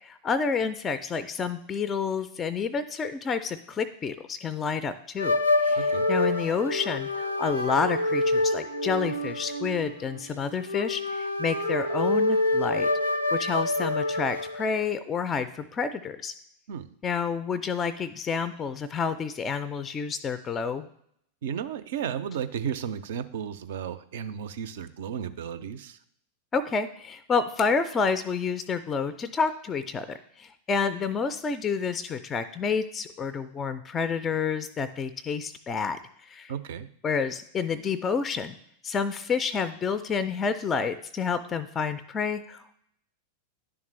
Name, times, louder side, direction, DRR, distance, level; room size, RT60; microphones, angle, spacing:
voice 1, 0.0-5.4 5.6-12.9 13.3-16.3 17.0-20.9 26.5-36.5 37.0-38.6 38.8-42.8, left 5 dB, 20° left, 13 dB, 0.3 m, -29 dB
sound 1, 5.2-14.7, left 2 dB, 80° left, 0.5 m, -27 dB
voice 2, 5.8-6.1 16.7-16.9 21.4-26.0 36.5-36.9, right 8 dB, 55° right, 12 dB, 0.4 m, -34 dB
10.5 x 3.5 x 3.2 m, 0.69 s
figure-of-eight pair, 90°, 0 cm